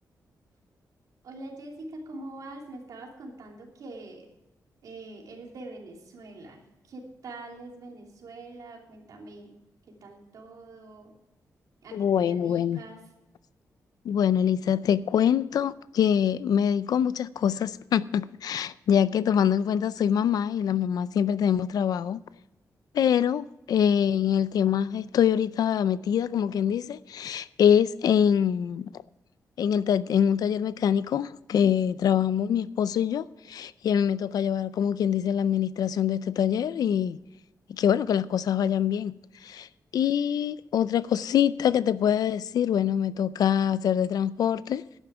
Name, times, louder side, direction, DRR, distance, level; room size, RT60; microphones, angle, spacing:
voice 1, 1.2-4.3 4.8-9.6 9.9-11.1 11.8-13.0 31.6-32.1, right 2 dB, 70° right, 3.1 m, -44 dB
voice 2, 11.9-12.8 14.0-22.2 22.9-28.9 29.6-37.2 37.7-39.1 39.4-39.7 39.9-44.8, left 8 dB, 80° left, 0.5 m, -24 dB
12.0 x 9.8 x 4.8 m
wide cardioid pair, 175°, 6 cm